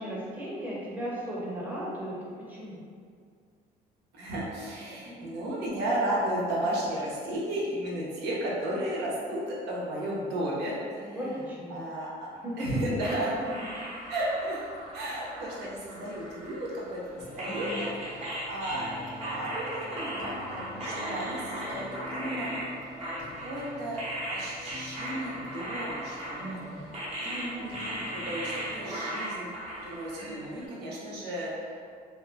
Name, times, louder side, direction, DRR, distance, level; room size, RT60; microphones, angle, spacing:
voice 1, 0.0-2.2 2.5-2.8 11.0-11.8 12.4-12.5 13.7-14.1 17.4-17.8 26.4-27.0, right 1 dB, 10° right, -7 dB, 0.7 m, -36 dB
voice 2, 4.1-11.2 11.7-12.3 12.6-13.3 14.1-14.7 14.9-22.5 23.4-24.0 24.3-26.9 27.2-29.5 29.8-31.8, right 1 dB, 80° right, -5 dB, 0.7 m, -34 dB
sound 1, 13.0-17.0 17.4-30.7, right 1 dB, 40° right, 0.8 m, -37 dB
sound 2, 17.1-29.0, left 2 dB, 55° left, 0.4 m, -46 dB
2.6 x 2.2 x 2.5 m, 2.1 s
cardioid pair, 110°, 17 cm